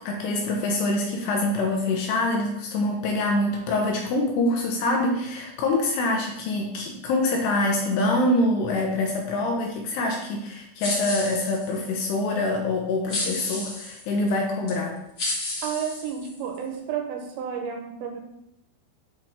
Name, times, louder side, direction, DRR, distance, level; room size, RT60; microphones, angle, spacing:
voice 1, 0.0-15.0, left 2 dB, 75° left, 0 dB, 2.7 m, -25 dB
sound 1, 10.8-11.9 13.1-14.0 14.7-14.8 15.2-16.6, left 2 dB, 35° left, 1.9 m, -31 dB
voice 2, 15.6-18.2, right 7 dB, 75° right, 4 dB, 2.9 m, -31 dB
8.7 x 4.7 x 5.9 m, 0.82 s
omnidirectional pair, 5.6 m